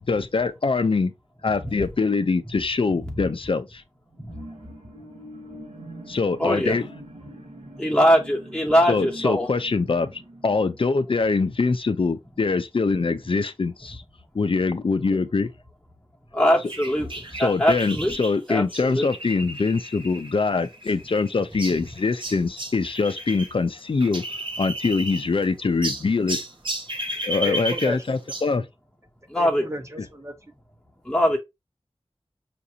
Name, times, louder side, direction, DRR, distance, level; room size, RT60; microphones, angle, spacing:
voice 1, 0.1-1.1 1.4-3.8 6.1-6.9 8.9-10.1 10.4-14.0 14.3-15.5 17.3-26.4 27.2-28.7, left 4 dB, 60° left, 0.5 m, -24 dB
sound 1, 4.1-11.9 12.3-12.4, right 1 dB, 70° right, 1.2 m, -44 dB
voice 2, 6.4-6.8 7.8-9.5 16.3-18.1 18.5-19.1 29.3-29.7 31.1-31.4, equal, 5° left, 0.8 m, -22 dB
sound 2, 16.7-23.5 23.8-25.5 25.8-28.5, right 1 dB, 55° right, 1.1 m, -34 dB
voice 3, 27.4-28.1 29.4-30.3, equal, 25° right, 0.9 m, -33 dB
5.8 x 2.6 x 2.7 m
wide cardioid pair, 65°, 10 cm